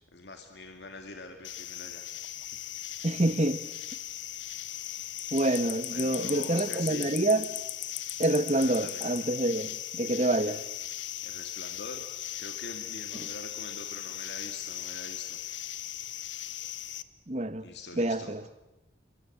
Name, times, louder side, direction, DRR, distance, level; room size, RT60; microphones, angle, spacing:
voice 1, 0.1-2.0 2.5-2.6 5.9-7.1 8.6-9.1 11.2-12.1 12.4-15.4 17.6-18.5, left 2 dB, 70° left, 2.3 m, -44 dB
sound 1, 1.4-17.0, left 13 dB, 90° left, 1.1 m, -38 dB
voice 2, 3.0-3.6 5.3-7.4 8.2-10.6 17.3-18.5, right 1 dB, 35° right, 1.1 m, -27 dB
28.0 x 24.0 x 8.0 m
head